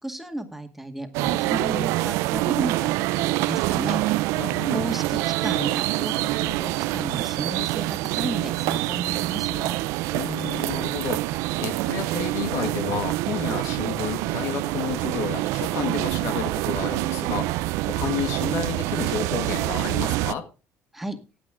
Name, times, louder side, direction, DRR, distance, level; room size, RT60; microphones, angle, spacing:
voice 1, 0.0-4.0 4.7-9.8 20.9-21.2, right 1 dB, 5° right, 5 dB, 2.1 m, -33 dB
sound 1, 1.1-20.3, right 18 dB, 80° right, 0.5 m, -26 dB
voice 2, 4.3-4.8 10.1-20.5, left 8 dB, 70° left, 8 dB, 1.9 m, -31 dB
15.5 x 8.8 x 3.7 m, 0.32 s
supercardioid pair, 90°, 5 cm